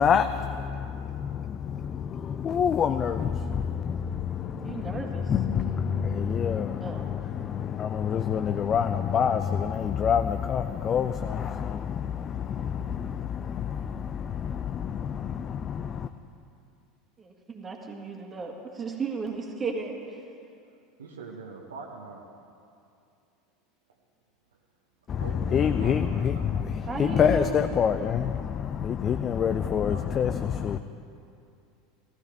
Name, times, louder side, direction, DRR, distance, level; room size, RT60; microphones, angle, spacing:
voice 1, 0.0-16.1 25.1-30.8, left 7 dB, 35° left, 10 dB, 0.4 m, -27 dB
voice 2, 4.5-5.3 6.8-7.1 17.2-20.0 26.9-27.6, right 4 dB, 25° right, 1 dB, 1.9 m, -34 dB
voice 3, 21.0-22.3 25.2-26.7 29.9-30.3 30.7-30.8, right 4 dB, 75° right, 0 dB, 1.0 m, -43 dB
15.5 x 14.0 x 3.5 m, 2.5 s
figure-of-eight pair, 75°, 0 cm